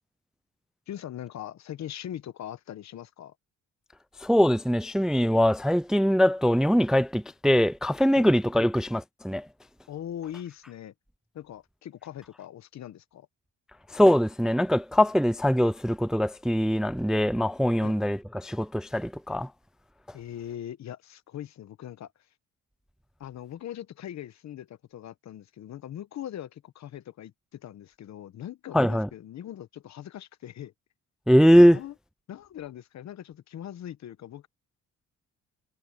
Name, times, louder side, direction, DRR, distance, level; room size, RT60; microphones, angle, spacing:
voice 1, 0.9-3.3 8.1-8.3 9.9-10.9 11.3-13.3 17.8-18.0 20.1-22.3 23.2-30.7 31.7-31.9 32.3-34.5, left 11 dB, 65° left, 1.1 m, -41 dB
voice 2, 4.2-9.5 13.9-19.5 20.1-20.2 28.7-29.1 31.3-31.8, equal, ahead, 0.4 m, -22 dB
cardioid pair, 90°, 30 cm